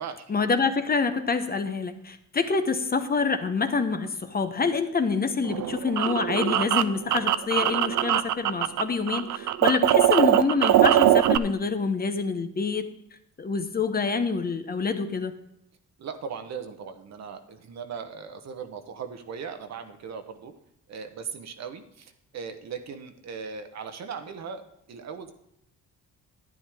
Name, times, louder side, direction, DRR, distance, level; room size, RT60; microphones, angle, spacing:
voice 1, 0.3-12.9 13.4-15.3, left 4 dB, 30° left, 8 dB, 0.9 m, -26 dB
sound 1, 5.4-8.8 9.1-11.4, right 12 dB, 75° right, 0.6 m, -21 dB
voice 2, 16.0-20.5 20.9-24.6 24.9-25.3, right 6 dB, 60° right, 7 dB, 1.2 m, -38 dB
11.0 x 9.8 x 3.5 m, 0.78 s
cardioid pair, 90°, 30 cm